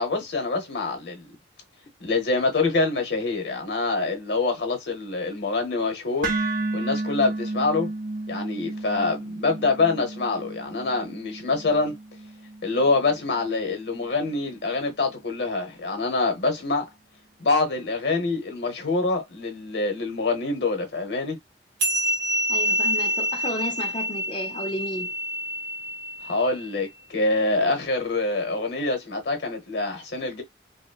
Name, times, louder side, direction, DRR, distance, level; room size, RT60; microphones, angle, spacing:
voice 1, 0.0-1.3 2.0-6.3 6.7-7.9 8.3-12.0 12.6-16.9 17.4-21.4 26.2-30.4, left 3 dB, 70° left, 0.9 m, -25 dB
sound 1, 6.2-14.3, right 2 dB, 45° right, 0.6 m, -33 dB
sound 2, 21.8-26.7, equal, 65° right, 0.9 m, -27 dB
voice 2, 22.5-25.1, equal, 25° left, 0.6 m, -32 dB
3.0 x 2.1 x 2.2 m
head